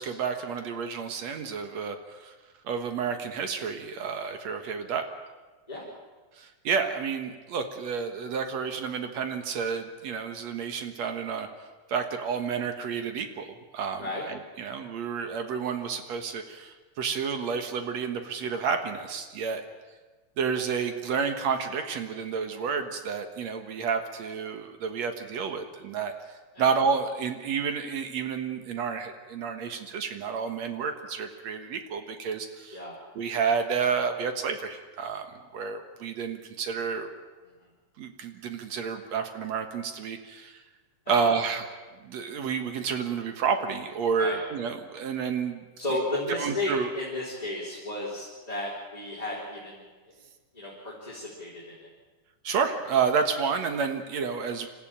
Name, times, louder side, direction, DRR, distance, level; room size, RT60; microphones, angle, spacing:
voice 1, 0.0-2.3 2.6-5.1 6.4-11.5 11.9-19.6 20.4-26.1 26.6-32.8 33.2-35.3 35.5-37.1 38.0-40.6 41.1-41.7 42.0-45.6 46.3-46.9 52.4-54.7, right 6 dB, 65° right, 7 dB, 2.6 m, -30 dB
voice 2, 45.8-49.9 50.5-51.9, left 1 dB, 10° left, -7 dB, 4.0 m, -33 dB
27.0 x 14.5 x 8.9 m, 1.3 s
omnidirectional pair, 3.4 m